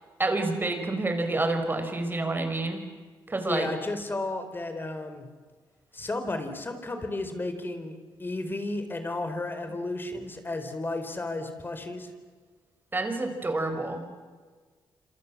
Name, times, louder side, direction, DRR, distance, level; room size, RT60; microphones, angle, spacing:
voice 1, 0.2-2.8 3.3-3.7 12.9-14.0, right 2 dB, 25° right, 7 dB, 5.8 m, -28 dB
voice 2, 3.4-5.3 5.9-12.1, left 2 dB, 25° left, 8 dB, 4.5 m, -33 dB
27.0 x 27.0 x 7.5 m, 1.4 s
cardioid pair, 80°, 8 cm